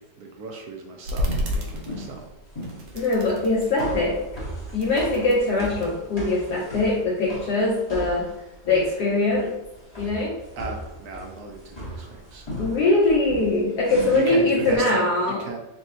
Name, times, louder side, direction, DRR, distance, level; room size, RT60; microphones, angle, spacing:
voice 1, 0.0-2.3 10.6-12.5 14.1-15.6, right 4 dB, 70° right, 2 dB, 1.0 m, -35 dB
sound 1, 1.0-2.3 2.6-4.2 4.6-5.9 6.5-7.6, left 1 dB, 90° right, 1.4 m, -32 dB
Jumping Reverb, 1.2-14.8, equal, 20° left, 0.8 m, -37 dB
voice 2, 2.9-4.2 4.7-8.3 8.7-9.5 10.0-10.3 12.6-15.4, left 2 dB, 65° left, -4 dB, 1.2 m, -22 dB
4.1 x 3.5 x 2.7 m, 0.90 s
omnidirectional pair, 2.0 m